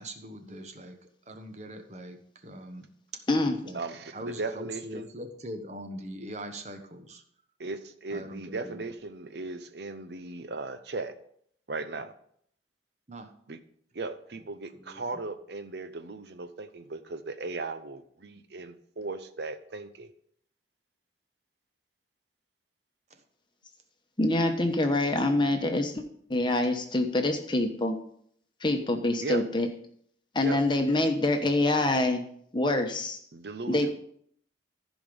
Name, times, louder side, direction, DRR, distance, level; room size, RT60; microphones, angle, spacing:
voice 1, 0.0-3.8 4.1-7.2 8.1-8.8 13.1-13.3 14.7-15.1 23.1-23.2, right 1 dB, 35° right, 6 dB, 1.1 m, -42 dB
voice 2, 3.7-5.1 7.6-11.1 11.7-12.1 13.5-13.6 13.9-20.1 29.2-29.4 30.4-30.6 33.3-33.9, right 3 dB, 60° right, 9 dB, 0.7 m, -37 dB
voice 3, 24.2-26.0 26.3-28.0 28.6-29.7 30.3-32.2 32.5-33.2 33.7-33.9, left 2 dB, 25° left, 5 dB, 1.0 m, -25 dB
14.5 x 5.2 x 5.3 m, 0.65 s
head